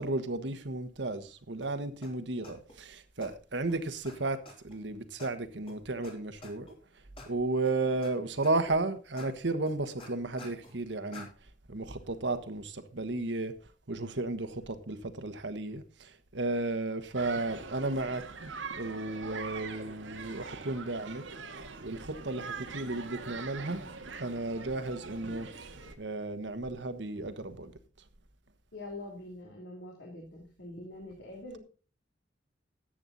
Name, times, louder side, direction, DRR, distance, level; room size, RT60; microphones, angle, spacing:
voice 1, 0.0-6.7 7.2-11.3 11.7-13.5 13.9-21.2 21.8-23.8 24.1-25.5 26.0-27.7, right 2 dB, 65° right, 1.3 m, -34 dB
sound 1, 1.6-1.7 2.0-2.1 2.4-2.8 3.2-3.3 3.7-3.8 4.0-4.1 4.5-4.8 5.2-5.3 5.7-5.8 6.0-6.1 6.4-6.7 7.2-7.3 7.7-8.1 8.4-8.8 9.2-9.3 9.7-10.8 11.1-11.3, left 2 dB, 30° left, 3.7 m, -48 dB
sound 2, 17.1-26.0, right 4 dB, 90° right, 1.6 m, -43 dB
voice 2, 28.7-31.6, left 1 dB, 70° left, 3.2 m, -44 dB
14.0 x 8.8 x 4.1 m
head